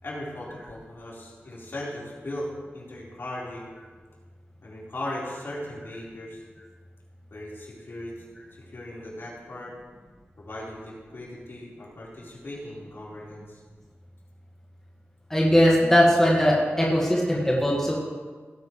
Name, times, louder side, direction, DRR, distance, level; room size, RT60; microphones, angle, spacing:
voice 1, 0.0-3.7 4.6-6.4 7.3-8.1 8.7-9.7 10.4-13.6, left 1 dB, 60° left, -6 dB, 4.4 m, -38 dB
voice 2, 15.3-18.0, equal, 10° left, -4 dB, 1.8 m, -20 dB
18.0 x 10.5 x 3.3 m, 1.5 s
wide cardioid pair, 115°, 5 cm